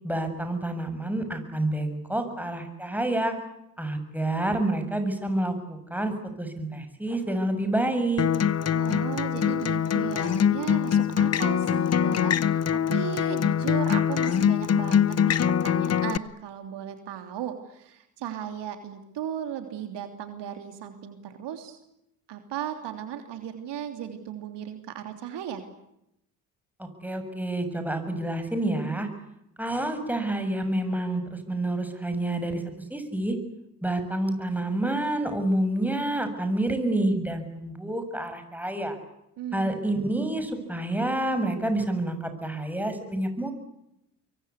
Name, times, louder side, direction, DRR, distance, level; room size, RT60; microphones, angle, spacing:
voice 1, 0.0-3.4 3.8-8.3 26.8-29.1 29.6-32.6 32.9-33.4 33.8-39.0 39.5-43.5, right 1 dB, 5° right, 7 dB, 7.0 m, -28 dB
Acoustic guitar, 8.2-16.2, left 8 dB, 30° left, 0.9 m, -23 dB
voice 2, 8.7-21.8 22.3-25.6 39.4-39.9, right 9 dB, 60° right, 6 dB, 3.3 m, -36 dB
25.5 x 23.5 x 8.3 m, 0.82 s
hypercardioid pair, 60°, 47 cm